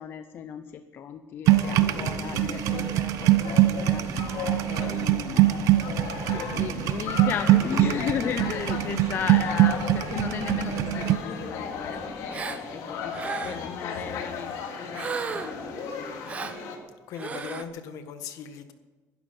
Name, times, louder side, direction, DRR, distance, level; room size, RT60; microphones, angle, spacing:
voice 1, 0.0-4.2 4.7-5.6 6.3-12.4 12.7-15.4 15.7-16.2, left 8 dB, 40° left, 9 dB, 0.7 m, -35 dB
sound 1, 1.5-16.8, left 5 dB, 90° left, 2.6 m, -36 dB
sound 2, 1.5-11.2, right 14 dB, 65° right, 0.7 m, -23 dB
Gasp, 12.3-12.6 13.1-13.7 14.9-15.6 16.3-16.6 17.1-17.6, right 5 dB, 25° right, 0.8 m, -34 dB
voice 2, 17.1-18.7, left 7 dB, 75° left, 8 dB, 1.5 m, -38 dB
20.5 x 11.5 x 5.3 m, 1.2 s
cardioid pair, 175°, 6 cm